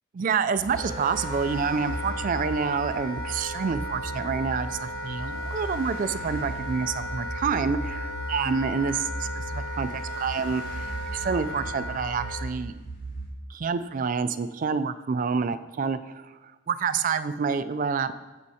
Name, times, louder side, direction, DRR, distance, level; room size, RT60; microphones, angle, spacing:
voice 1, 0.1-12.7 13.5-16.2 16.7-18.1, right 5 dB, 40° right, 12 dB, 0.3 m, -28 dB
sound 1, 0.6-13.3, right 1 dB, 50° left, 1.9 m, -37 dB
Wind instrument woodwind instrument, 0.7-12.5, equal, 70° left, 1.3 m, -36 dB
13.5 x 5.3 x 2.8 m, 1.2 s
head